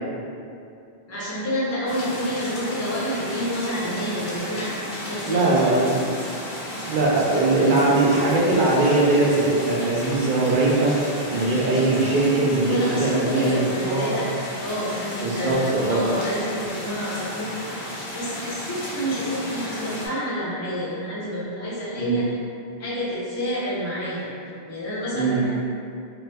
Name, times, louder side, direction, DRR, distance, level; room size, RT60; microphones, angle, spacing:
voice 1, 1.1-5.9 7.3-7.9 12.7-14.3 14.6-15.6 15.9-22.3 22.8-24.3 24.7-25.5, equal, 20° left, -8 dB, 0.5 m, -29 dB
sound 1, 1.9-20.1, left 1 dB, 65° left, 0.9 m, -34 dB
voice 2, 5.2-5.9 6.9-10.9 11.3-14.2 15.2-16.0 21.9-22.2 25.1-25.4, right 2 dB, 60° right, -4 dB, 0.6 m, -21 dB
3.0 x 2.0 x 3.3 m, 2.5 s
omnidirectional pair, 1.1 m